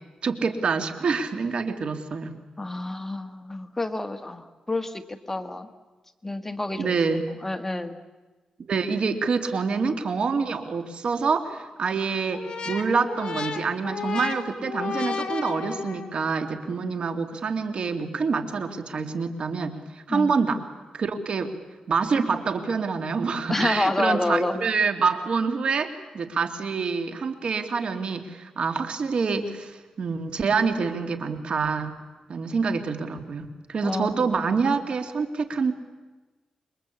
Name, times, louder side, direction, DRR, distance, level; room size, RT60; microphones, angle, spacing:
voice 1, 0.2-2.4 6.8-7.3 8.7-20.6 20.9-21.5 21.9-32.0 32.3-35.7, right 5 dB, 60° right, 8 dB, 2.5 m, -26 dB
voice 2, 2.6-5.7 6.2-8.0 20.1-20.3 23.5-24.7 33.8-34.3, left 2 dB, 15° left, 8 dB, 1.5 m, -29 dB
sound 1, 12.3-16.2, left 5 dB, 50° left, 2.6 m, -33 dB
27.5 x 23.0 x 8.5 m, 1.2 s
cardioid pair, 90°, 2 cm